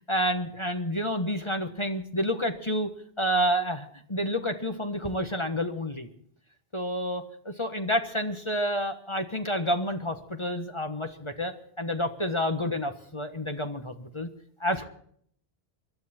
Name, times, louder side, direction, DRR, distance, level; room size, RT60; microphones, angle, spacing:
voice 1, 0.1-2.9 3.2-6.1 6.7-14.3 14.6-14.8, equal, 30° left, 6 dB, 1.3 m, -29 dB
24.5 x 12.0 x 4.4 m, 0.62 s
omnidirectional pair, 1.1 m